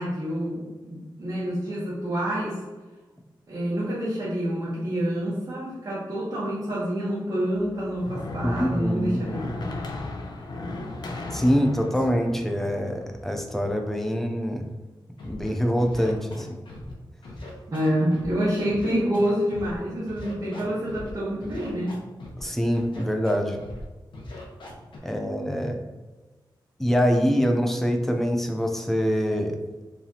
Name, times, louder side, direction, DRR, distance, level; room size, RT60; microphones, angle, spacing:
voice 1, 0.0-2.6 3.5-9.6 17.7-22.0, equal, 40° right, -10 dB, 1.2 m, -27 dB
sound 1, 7.6-13.7, left 2 dB, 60° left, 0.6 m, -36 dB
voice 2, 8.4-9.2 11.3-14.6 15.2-16.6 22.4-23.6 25.0-25.8 26.8-29.6, equal, 5° left, 3 dB, 0.5 m, -24 dB
Scratching (performance technique), 15.2-15.5 15.8-16.9 17.2-18.3 18.7-19.8 20.1-21.1 21.4-22.4 22.7-23.3 23.6-23.8 24.1-25.0, left 1 dB, 75° left, 1.0 m, -40 dB
4.8 x 3.3 x 2.8 m, 1.2 s
wide cardioid pair, 165°, 8 cm